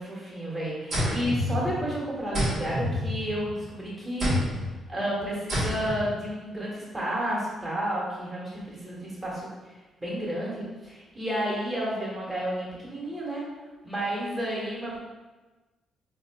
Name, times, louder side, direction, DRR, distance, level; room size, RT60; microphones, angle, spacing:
voice 1, 0.0-4.3 4.9-9.5 10.0-13.4 13.8-15.0, right 1 dB, 15° right, -6 dB, 1.3 m, -31 dB
sound 1, 0.9-2.0 2.3-3.6 4.2-4.7 5.5-6.1, left 1 dB, 60° right, 1.2 m, -28 dB
4.3 x 2.4 x 2.3 m, 1.2 s
cardioid pair, 90°, 0 cm